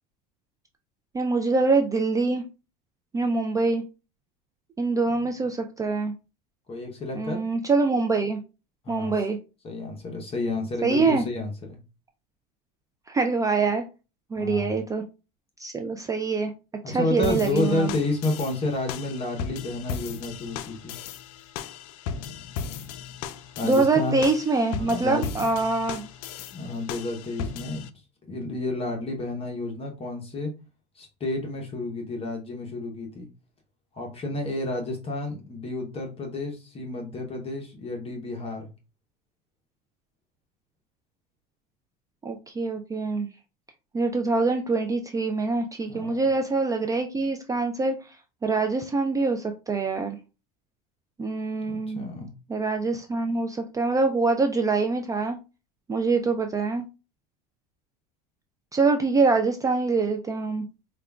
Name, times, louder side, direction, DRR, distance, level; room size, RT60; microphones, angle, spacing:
voice 1, 1.1-2.4 3.1-3.8 4.8-6.1 7.1-8.4 8.9-9.4 10.8-11.2 13.1-13.9 14.3-15.0 15.6-16.5 16.9-17.9 23.6-26.1 42.2-43.3 43.9-48.2 48.4-50.2 51.2-52.1 52.5-55.4 55.9-56.8 58.7-60.7, right 3 dB, 15° right, 5 dB, 0.4 m, -24 dB
voice 2, 6.7-7.4 8.8-9.1 9.6-11.8 14.4-14.8 16.8-20.9 23.6-24.2 24.8-25.5 26.5-27.9 28.3-30.5 30.9-33.3 33.9-38.7 45.9-46.3 51.7-52.3, left 2 dB, 30° left, 1 dB, 0.8 m, -30 dB
sound 1, 17.2-27.9, left 6 dB, 70° left, 0.4 m, -36 dB
4.8 x 2.3 x 2.3 m, 0.30 s
supercardioid pair, 100°, 20 cm